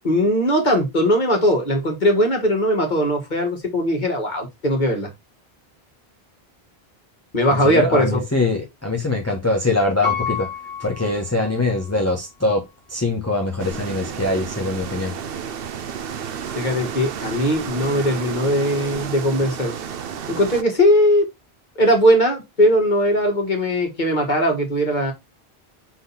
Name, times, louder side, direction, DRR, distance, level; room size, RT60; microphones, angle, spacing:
voice 1, 0.1-5.1 7.3-8.2 16.5-19.7 20.3-21.3 21.8-25.1, equal, 50° left, 2.2 m, -19 dB
voice 2, 7.5-10.5 10.8-15.2, left 2 dB, 15° left, 1.1 m, -23 dB
Piano, 10.0-12.0 12.6-12.7, left 7 dB, 10° right, 1.9 m, -29 dB
sound 1, 13.6-20.6, right 7 dB, 70° right, 0.9 m, -31 dB
5.8 x 4.0 x 4.1 m
omnidirectional pair, 1.0 m